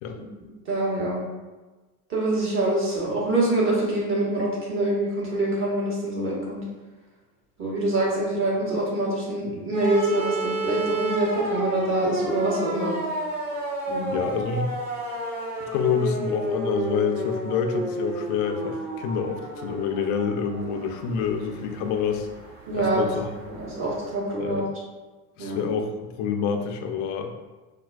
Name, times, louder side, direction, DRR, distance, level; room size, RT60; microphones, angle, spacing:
voice 1, 0.6-1.2 2.1-6.6 7.6-12.9 13.9-14.2 22.7-23.0 23.5-24.7 25.4-25.7, right 2 dB, 25° right, -5 dB, 1.2 m, -25 dB
sound 1, 9.7-24.1, right 1 dB, 45° right, 1.5 m, -31 dB
voice 2, 14.1-14.7 15.7-22.3 22.7-23.3 24.4-24.6 25.4-27.3, left 6 dB, 45° left, 5 dB, 0.4 m, -27 dB
4.2 x 2.2 x 2.3 m, 1.2 s
hypercardioid pair, 105°, 46 cm